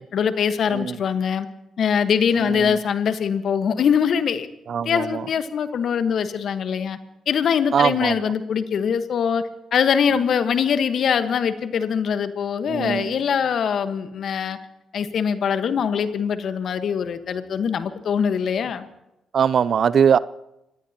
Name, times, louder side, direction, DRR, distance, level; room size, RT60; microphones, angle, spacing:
voice 1, 0.1-1.5 1.8-4.5 4.8-7.0 7.3-9.4 9.7-14.6 14.9-18.9, left 7 dB, 65° left, 10 dB, 1.3 m, -22 dB
voice 2, 2.4-2.8 4.7-5.3 7.7-8.3 12.7-13.2 19.3-20.2, right 7 dB, 60° right, 19 dB, 0.5 m, -21 dB
26.0 x 19.0 x 2.9 m, 0.88 s
hypercardioid pair, 45°, 0 cm